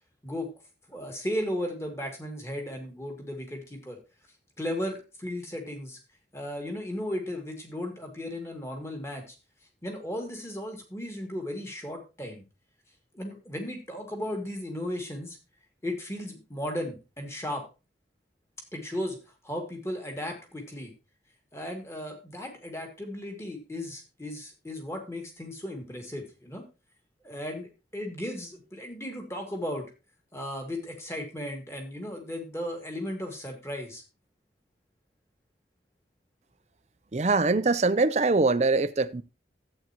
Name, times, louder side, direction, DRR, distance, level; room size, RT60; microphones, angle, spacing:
voice 1, 0.9-4.0 4.6-6.0 6.3-9.3 9.8-12.4 13.1-15.4 15.8-17.6 18.7-19.2 19.4-20.9 21.5-26.7 27.2-29.9 30.3-34.0, left 1 dB, 15° left, 2.4 m, -35 dB
voice 2, 37.1-39.2, right 3 dB, 40° right, 0.5 m, -23 dB
13.5 x 8.7 x 3.0 m
head